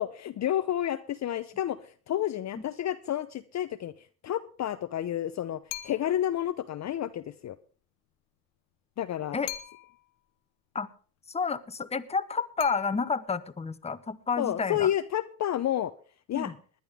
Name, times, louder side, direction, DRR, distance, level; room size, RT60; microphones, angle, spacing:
voice 1, 0.0-7.6 9.0-9.4 14.4-15.9 16.3-16.5, left 11 dB, 40° left, 11 dB, 0.7 m, -30 dB
sound 1, 5.7-6.3 9.5-10.2 12.6-13.4, left 15 dB, 70° left, 1.2 m, -41 dB
voice 2, 11.3-14.9 16.3-16.5, left 5 dB, 15° left, 12 dB, 0.9 m, -30 dB
20.0 x 10.5 x 3.6 m, 0.41 s
hypercardioid pair, 75°, 44 cm